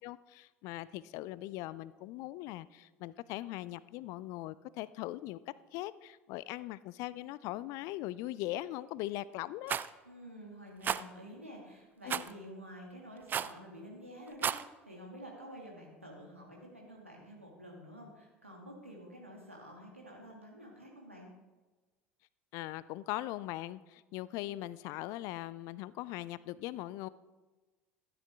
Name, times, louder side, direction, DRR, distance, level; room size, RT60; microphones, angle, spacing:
voice 1, 0.0-5.4 5.7-9.8 12.0-12.2 22.5-27.1, left 16 dB, 50° left, 18 dB, 0.4 m, -40 dB
Rattle, 9.7-9.9 10.8-11.0 12.1-12.3 13.3-13.6 14.3-14.6, right 8 dB, 30° right, 0.3 m, -32 dB
voice 2, 10.0-21.3, equal, 90° right, -1 dB, 2.0 m, -50 dB
12.5 x 9.4 x 3.5 m, 1.2 s
figure-of-eight pair, 70°, 7 cm